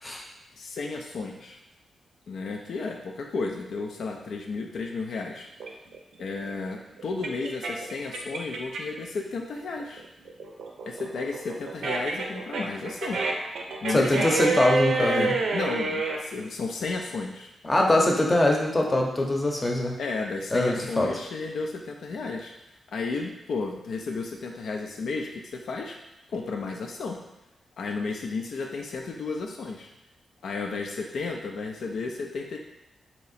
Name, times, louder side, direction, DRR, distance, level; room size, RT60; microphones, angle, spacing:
voice 1, 0.6-1.6 2.3-5.5 6.2-10.1 10.9-13.2 13.8-14.2 15.0-17.5 20.0-22.5 22.9-26.0 26.3-27.2 27.8-29.9 30.4-32.6, left 4 dB, 75° left, 1 dB, 0.4 m, -33 dB
sound 1, 5.6-9.0 9.4-16.2, right 3 dB, 80° right, 0.5 m, -29 dB
voice 2, 13.9-15.3 17.6-20.0 20.5-21.2, left 1 dB, 25° left, 0 dB, 0.7 m, -23 dB
3.1 x 2.8 x 4.1 m, 0.95 s
cardioid pair, 85°, 0 cm